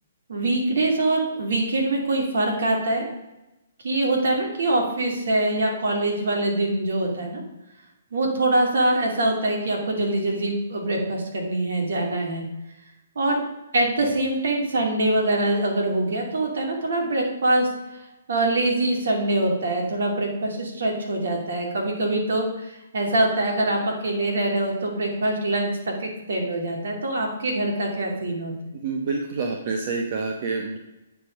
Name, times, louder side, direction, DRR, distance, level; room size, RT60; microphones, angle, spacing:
voice 1, 0.3-3.0 3.8-7.4 8.1-12.4 13.2-13.4 13.7-17.7 18.3-28.5, right 2 dB, 70° right, 1 dB, 2.5 m, -24 dB
voice 2, 28.8-30.8, right 4 dB, 50° right, 2 dB, 1.0 m, -27 dB
8.7 x 5.0 x 5.1 m, 0.98 s
hypercardioid pair, 135°, 0 cm